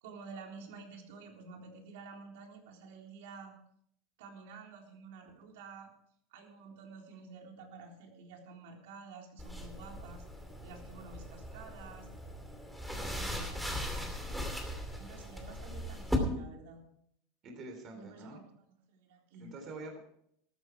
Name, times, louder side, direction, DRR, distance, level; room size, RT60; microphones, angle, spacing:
voice 1, 0.0-3.5 4.2-5.9 6.3-10.3 10.6-12.1 12.9-14.2 14.9-16.9 17.9-19.5, right 4 dB, 80° right, 2 dB, 3.8 m, -50 dB
sound 1, 9.4-16.2, equal, ahead, 2.5 m, -39 dB
voice 2, 17.4-18.4 19.4-20.0, right 2 dB, 35° right, 3 dB, 3.5 m, -46 dB
14.0 x 13.5 x 4.7 m, 0.71 s
supercardioid pair, 150°, 0 cm